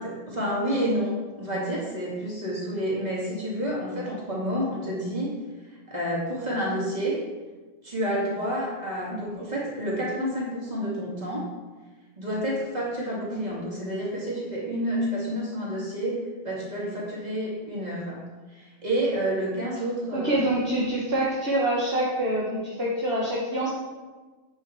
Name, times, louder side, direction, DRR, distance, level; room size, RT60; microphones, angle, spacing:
voice 1, 0.0-5.3 5.7-7.2 7.8-11.5 12.2-18.2 18.5-20.4, equal, 30° right, -7 dB, 4.2 m, -29 dB
voice 2, 20.1-23.7, right 1 dB, 50° right, -4 dB, 2.0 m, -26 dB
10.5 x 9.5 x 4.9 m, 1.3 s
omnidirectional pair, 1.4 m